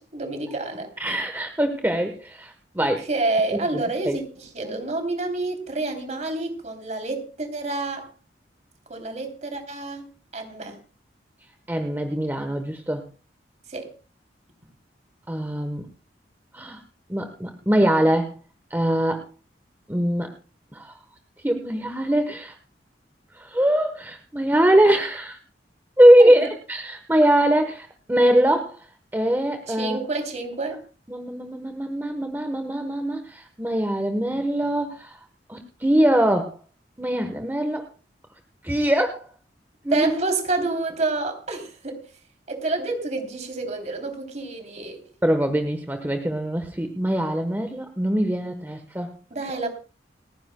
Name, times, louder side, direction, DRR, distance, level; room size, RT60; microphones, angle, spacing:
voice 1, 0.0-0.9 2.8-8.1 8.9-10.1 10.3-10.8 13.7-13.9 26.2-26.5 29.7-30.8 39.9-42.1 42.5-45.0 49.3-49.7, right 2 dB, 40° right, 3.2 m, -28 dB
voice 2, 1.0-3.0 3.7-4.2 11.7-13.0 15.3-15.9 16.5-16.8 17.1-18.4 18.7-19.2 19.9-20.3 20.7-20.9 21.4-22.5 23.3-25.4 26.0-28.9 29.1-30.0 31.1-35.2 35.5-36.6 37.0-37.9 38.6-39.3 39.8-40.1 45.2-49.1, right 1 dB, 10° right, 1.1 m, -22 dB
29.5 x 10.0 x 2.2 m
head